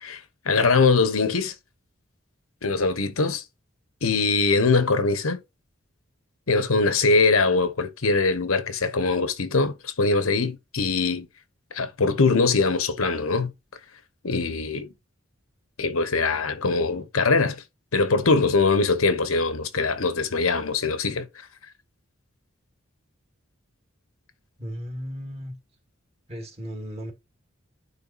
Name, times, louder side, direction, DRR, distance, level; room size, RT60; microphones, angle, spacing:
voice 1, 0.0-1.5 2.6-3.4 4.0-5.4 6.5-11.3 11.7-13.5 14.2-14.9 15.8-17.6 17.9-21.2, left 4 dB, 90° left, 1.1 m, -22 dB
voice 2, 24.6-25.5 26.3-27.1, equal, 30° right, 1.8 m, -35 dB
9.7 x 3.9 x 2.5 m
head